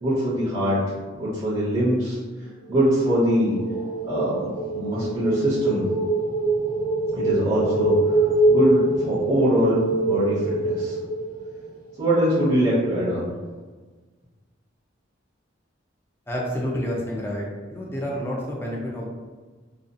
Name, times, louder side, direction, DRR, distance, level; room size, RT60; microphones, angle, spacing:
voice 1, 0.0-0.8 1.1-2.2 2.7-3.6 4.0-5.8 7.1-10.9 12.0-13.3, equal, 30° right, -10 dB, 0.7 m, -23 dB
sound 1, 3.2-11.9, right 2 dB, 45° left, 0.8 m, -24 dB
voice 2, 16.3-19.1, equal, 10° left, -3 dB, 0.4 m, -29 dB
2.5 x 2.3 x 2.6 m, 1.4 s
head